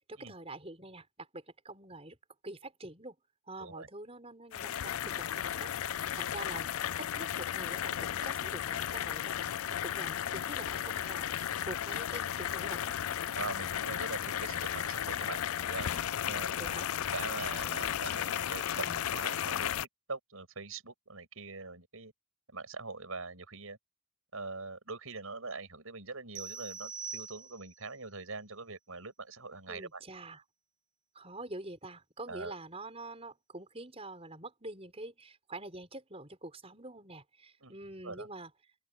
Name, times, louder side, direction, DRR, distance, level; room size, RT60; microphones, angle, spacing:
voice 1, 0.1-2.2 2.4-3.2 3.5-6.7 7.0-12.9 13.2-13.4 16.5-16.9 18.9-19.0 29.7-30.4 31.1-38.5, right 2 dB, 30° right, 5.8 m, -46 dB
sound 1, 4.5-19.8, left 10 dB, 80° left, 0.4 m, -34 dB
voice 2, 13.3-15.4 15.7-16.5 17.1-19.7 20.1-22.1 22.5-23.8 24.3-30.0 32.3-32.5 37.6-37.8 38.0-38.3, right 3 dB, 80° right, 6.3 m, -42 dB
sound 2, 26.3-27.9, right 6 dB, 60° right, 3.4 m, -43 dB
open air
head